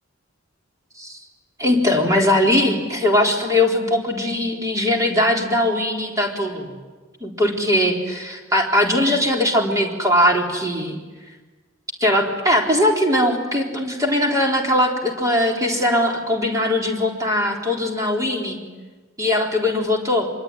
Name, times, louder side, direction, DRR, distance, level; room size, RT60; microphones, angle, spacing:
voice 1, 1.6-6.7 7.2-11.0 12.0-18.6 19.2-20.3, left 1 dB, 15° right, 0 dB, 4.1 m, -20 dB
25.5 x 23.0 x 9.9 m, 1.3 s
head